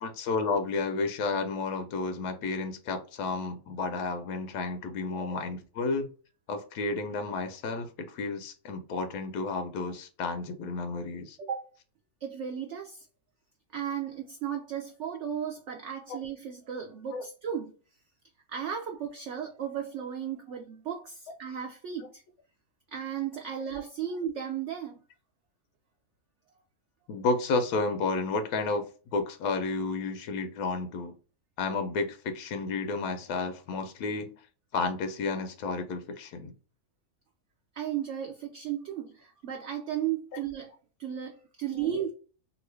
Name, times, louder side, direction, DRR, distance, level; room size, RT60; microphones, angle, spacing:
voice 1, 0.0-6.1 6.5-11.4 17.1-17.2 27.1-28.9 29.1-31.2 31.6-34.3 34.7-36.5, left 3 dB, 85° left, 1.2 m, -31 dB
voice 2, 12.2-13.1 13.7-17.7 18.5-22.2 22.9-25.0 26.5-26.6 37.7-40.7 41.0-42.1, right 9 dB, 70° right, 0.7 m, -35 dB
3.0 x 2.5 x 3.1 m
omnidirectional pair, 1.6 m